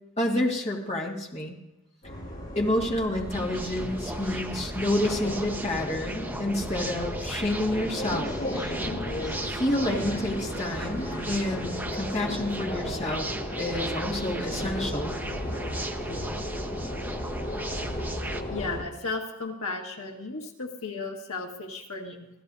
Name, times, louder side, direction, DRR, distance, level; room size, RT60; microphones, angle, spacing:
voice 1, 0.2-1.6 2.6-8.3 9.5-13.3 13.6-15.2, left 1 dB, 30° left, -1 dB, 1.9 m, -29 dB
sound 1, 2.0-18.8, left 1 dB, 45° left, 7.1 m, -35 dB
sound 2, 3.3-18.4, right 1 dB, 10° right, 0.8 m, -37 dB
voice 2, 18.5-22.3, left 3 dB, 75° left, 1 dB, 1.8 m, -35 dB
25.0 x 16.0 x 2.7 m, 0.94 s
head